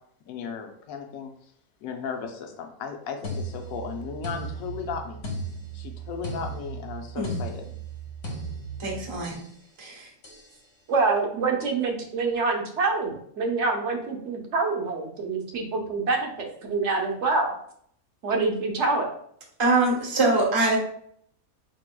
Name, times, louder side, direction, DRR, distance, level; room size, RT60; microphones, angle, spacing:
voice 1, 0.3-1.3 1.8-5.2 5.7-7.7, left 6 dB, 75° left, 4 dB, 1.1 m, -35 dB
sound 1, 3.2-9.5 10.2-10.5, right 2 dB, 50° left, 1.3 m, -36 dB
voice 2, 8.8-9.4 9.8-10.1 19.6-20.8, right 2 dB, 25° right, -2 dB, 0.8 m, -23 dB
voice 3, 10.9-17.5 18.2-19.1, right 3 dB, 60° right, 2 dB, 1.0 m, -26 dB
4.6 x 4.3 x 2.2 m, 0.66 s
omnidirectional pair, 1.5 m